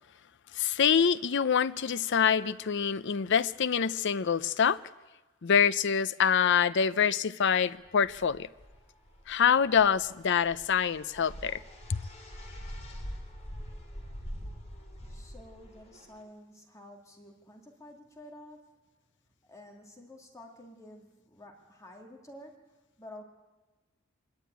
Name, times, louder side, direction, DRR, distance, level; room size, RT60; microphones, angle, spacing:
voice 1, 0.5-4.8 5.4-8.5 9.3-11.6 11.9-12.0, left 7 dB, 60° left, 0.6 m, -25 dB
sound 1, 7.8-16.2, equal, 35° left, 3.6 m, -44 dB
voice 2, 15.1-18.8 19.4-23.2, left 1 dB, 15° left, 2.2 m, -50 dB
25.0 x 11.5 x 9.2 m
head